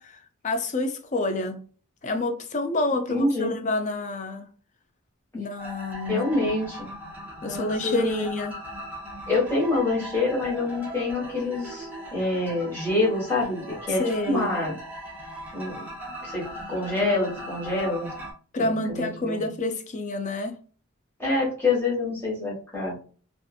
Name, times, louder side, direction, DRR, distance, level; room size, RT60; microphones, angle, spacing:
voice 1, 0.0-1.6 2.0-4.5 5.3-6.3 7.4-8.6 14.0-14.5 18.5-20.6, left 2 dB, 35° left, 0.4 m, -28 dB
voice 2, 3.1-3.5 6.1-6.9 7.4-8.3 9.3-14.7 15.5-15.8 16.2-18.1 18.6-19.4 21.2-22.9, left 2 dB, 10° left, 1.3 m, -26 dB
sound 1, 5.6-18.3, equal, 10° right, 0.7 m, -39 dB
2.6 x 2.4 x 2.4 m
head